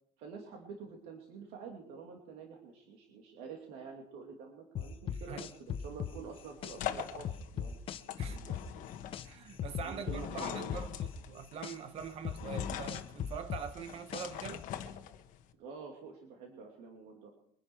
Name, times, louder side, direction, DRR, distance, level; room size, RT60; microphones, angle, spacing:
voice 1, 0.2-7.8 8.0-8.7 9.7-10.8 15.6-17.3, right 5 dB, 65° right, 2.7 m, -48 dB
sound 1, 4.8-6.8 7.3-9.3 9.6-11.8 12.3-14.5, left 9 dB, 30° left, 0.7 m, -38 dB
sound 2, 5.7-15.5, left 10 dB, 45° left, 1.4 m, -43 dB
voice 2, 8.2-8.6 9.2-14.7, right 6 dB, 35° right, 1.2 m, -44 dB
23.5 x 10.5 x 4.8 m
cardioid pair, 175°, 18 cm